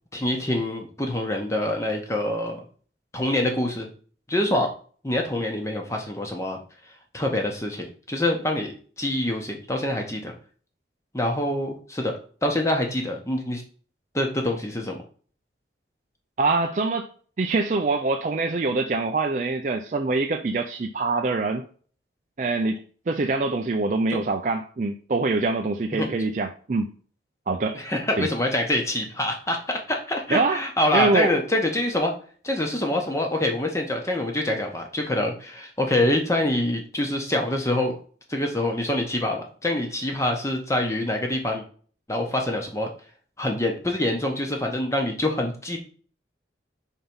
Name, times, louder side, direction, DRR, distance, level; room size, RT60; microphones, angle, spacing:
voice 1, 0.1-2.6 3.1-3.9 4.3-4.7 5.0-6.6 7.1-8.7 9.0-10.3 11.1-12.1 12.4-13.6 14.1-15.0 24.1-24.2 25.9-26.1 27.7-32.1 32.4-37.9 38.3-41.6 42.1-42.9 43.4-45.8, left 1 dB, 15° left, 1.0 m, -25 dB
voice 2, 16.4-17.1 17.4-21.6 22.4-26.9 27.5-27.8 28.2-28.3 30.3-30.6 30.9-31.3, right 3 dB, 40° right, 0.4 m, -24 dB
4.5 x 3.9 x 5.4 m
head